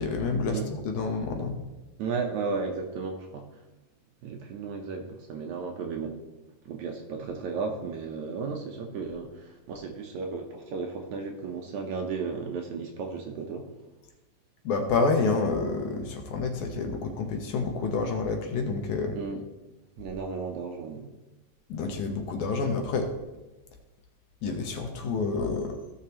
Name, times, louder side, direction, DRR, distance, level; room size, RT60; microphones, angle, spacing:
voice 1, 0.0-1.6 14.6-19.2 21.7-23.1 24.4-25.8, left 4 dB, 70° left, 4 dB, 2.2 m, -28 dB
voice 2, 2.0-3.5 4.2-6.2 6.7-13.7 19.1-19.4 20.0-21.1, right 5 dB, 70° right, 2 dB, 2.0 m, -34 dB
16.0 x 6.5 x 3.0 m, 1.1 s
omnidirectional pair, 3.9 m